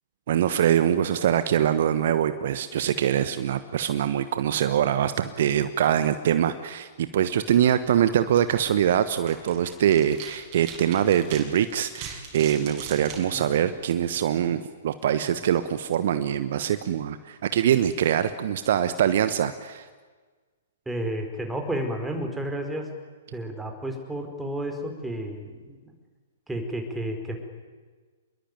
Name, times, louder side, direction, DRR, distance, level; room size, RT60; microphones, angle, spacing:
voice 1, 0.3-19.9, right 10 dB, 55° right, 12 dB, 1.2 m, -23 dB
sound 1, 7.4-14.3, right 6 dB, 35° right, 6.4 m, -43 dB
voice 2, 20.9-22.9 23.3-25.9 26.5-27.4, right 1 dB, 5° right, 3 dB, 4.7 m, -31 dB
28.0 x 22.0 x 9.2 m, 1.4 s
figure-of-eight pair, 115°, 0 cm